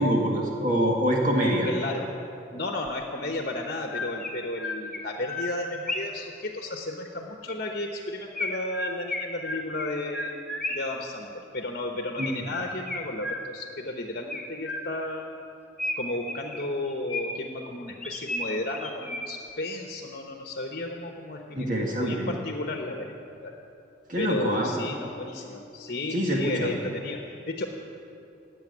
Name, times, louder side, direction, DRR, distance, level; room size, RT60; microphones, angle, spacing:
voice 1, 0.0-1.7 12.2-12.3 21.6-22.3 24.1-24.7 26.1-26.7, equal, 40° right, -1 dB, 1.8 m, -25 dB
voice 2, 1.6-2.1 2.5-10.4 10.7-15.4 16.0-23.6 24.2-27.7, left 2 dB, 50° left, 2 dB, 1.1 m, -33 dB
Chirp tweet, 2.9-3.0 3.6-6.3 8.4-11.0 12.2-13.8 14.3-15.2 15.8-17.5 18.0-19.5, left 2 dB, 5° left, 1.6 m, -34 dB
17.0 x 8.7 x 9.8 m, 2.7 s
head